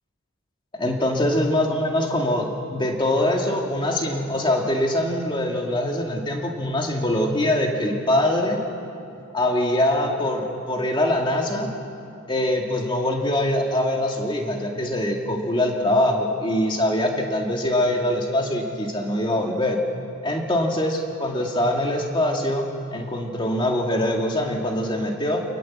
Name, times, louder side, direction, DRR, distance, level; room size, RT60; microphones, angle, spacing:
voice 1, 0.8-8.6 9.3-11.7 12.3-19.8 20.2-25.4, left 1 dB, 20° left, 1 dB, 2.3 m, -23 dB
27.0 x 20.0 x 7.4 m, 2.8 s
head